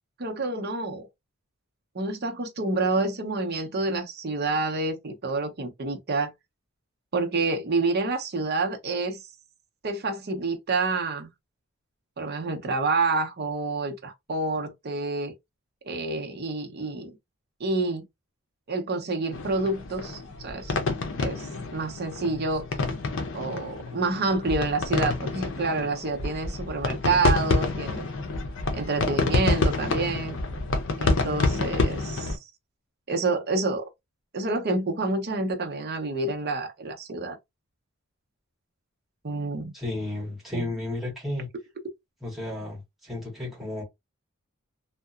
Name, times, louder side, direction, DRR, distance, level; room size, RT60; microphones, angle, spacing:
voice 1, 0.2-1.1 1.9-6.3 7.1-9.2 9.8-11.3 12.2-15.3 15.9-17.2 17.6-18.0 18.7-20.8 21.2-22.7 23.3-28.1 28.7-30.4 31.0-32.4 33.1-33.9 34.3-37.4 39.2-39.7 40.5-40.7, right 3 dB, 50° right, 0.7 m, -28 dB
sound 1, 19.3-32.4, left 3 dB, 60° left, 0.6 m, -28 dB
voice 2, 39.7-41.5 42.2-43.8, left 2 dB, ahead, 1.4 m, -33 dB
2.8 x 2.2 x 2.4 m
head